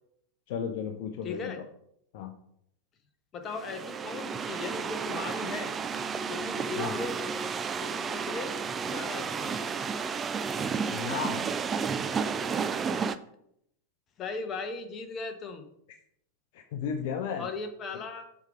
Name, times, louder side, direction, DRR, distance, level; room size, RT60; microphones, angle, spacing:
voice 1, 0.5-1.5 2.1-2.3 6.8-6.9 10.9-11.5 16.5-17.5, left 7 dB, 50° left, 5 dB, 0.7 m, -34 dB
voice 2, 1.2-1.6 3.3-5.7 6.3-7.1 7.8-8.5 8.8-9.7 14.2-15.6 17.4-18.2, left 4 dB, 25° left, 5 dB, 1.1 m, -38 dB
sound 1, 3.5-13.2, right 5 dB, 20° right, 0.4 m, -32 dB
6.4 x 4.9 x 5.0 m, 0.73 s
figure-of-eight pair, 90°, 0 cm